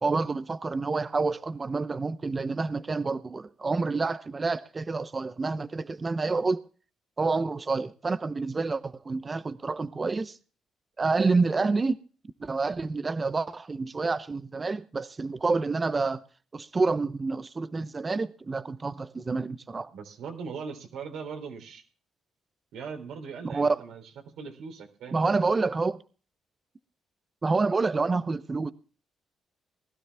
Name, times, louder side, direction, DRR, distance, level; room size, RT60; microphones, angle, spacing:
voice 1, 0.0-6.6 7.2-10.4 11.0-12.0 12.4-16.2 16.5-19.9 23.4-23.8 25.1-26.0 27.4-28.7, right 3 dB, 30° right, 0.7 m, -28 dB
voice 2, 19.9-21.8 22.7-24.0 24.4-25.5, right 5 dB, 80° right, 3.7 m, -40 dB
20.0 x 12.5 x 3.4 m
cardioid pair, 90°, 0 cm